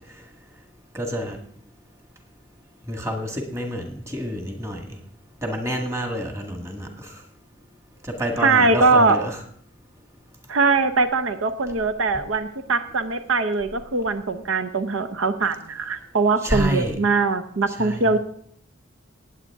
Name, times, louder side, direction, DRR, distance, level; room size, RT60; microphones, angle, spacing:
voice 1, 0.9-1.4 2.9-4.9 5.4-7.2 8.0-9.4 16.4-17.0 17.8-18.0, equal, 15° right, 2 dB, 1.7 m, -28 dB
voice 2, 8.4-9.2 10.5-18.2, right 3 dB, 85° right, 9 dB, 0.8 m, -21 dB
19.0 x 8.2 x 3.6 m, 0.63 s
head